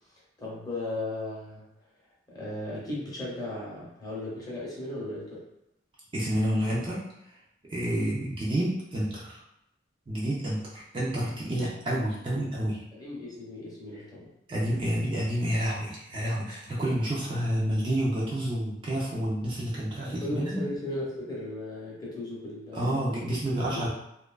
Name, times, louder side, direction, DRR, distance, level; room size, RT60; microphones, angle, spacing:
voice 1, 0.4-1.6 2.3-5.5 7.9-8.1 12.3-12.5 12.9-14.3 20.0-23.2 23.7-23.9, left 2 dB, 20° left, -6 dB, 0.7 m, -36 dB
voice 2, 6.1-7.0 7.7-9.4 10.1-12.8 14.5-20.6 22.7-23.9, right 1 dB, 25° right, -6 dB, 0.4 m, -29 dB
2.5 x 2.3 x 2.2 m, 0.82 s
head